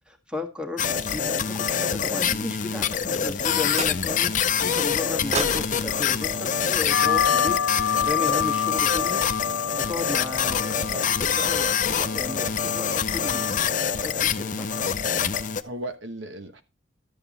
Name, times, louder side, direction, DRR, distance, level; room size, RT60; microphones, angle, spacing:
voice 1, 0.1-4.3 4.6-7.6 8.0-9.2 9.7-13.5 14.0-14.7, left 2 dB, 5° right, 1.6 m, -34 dB
sound 1, 0.8-15.6, left 7 dB, 40° left, 0.6 m, -25 dB
sound 2, 3.7-4.4 5.3-7.6, right 4 dB, 35° right, 0.7 m, -35 dB
sound 3, 6.9-16.0, left 8 dB, 80° left, 0.9 m, -29 dB
voice 2, 15.6-16.6, right 1 dB, 70° right, 1.2 m, -37 dB
12.5 x 7.6 x 4.1 m
head